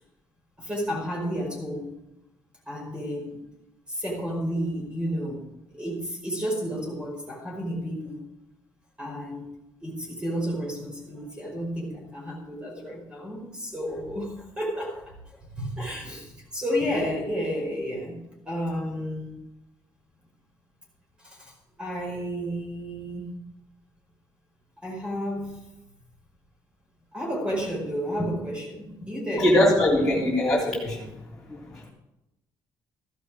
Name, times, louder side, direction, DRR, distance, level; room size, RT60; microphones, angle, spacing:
voice 1, 0.6-1.9 2.7-3.4 3.9-5.5 5.7-8.2 9.0-9.5 9.8-19.4 21.2-21.5 21.8-23.3 24.8-25.6 27.1-29.5, equal, 10° right, -1 dB, 5.0 m, -31 dB
voice 2, 29.4-31.1 31.5-31.9, left 1 dB, 5° left, -7 dB, 3.3 m, -22 dB
15.0 x 11.5 x 5.0 m, 0.90 s
cardioid pair, 160°, 8 cm